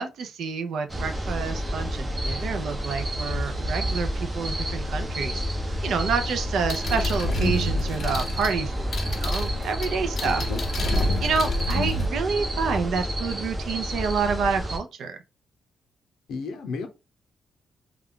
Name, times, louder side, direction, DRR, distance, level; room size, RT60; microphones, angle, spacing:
voice 1, 0.0-5.4 5.8-10.4 11.2-15.2, right 5 dB, 70° right, 0.5 m, -28 dB
sound 1, 0.9-14.8, equal, 15° right, 0.6 m, -29 dB
sound 2, 6.7-12.1, left 1 dB, 40° left, 0.5 m, -28 dB
voice 2, 10.2-10.6 16.3-16.9, left 4 dB, 85° left, 0.7 m, -32 dB
2.4 x 2.2 x 3.6 m
wide cardioid pair, 165°, 0 cm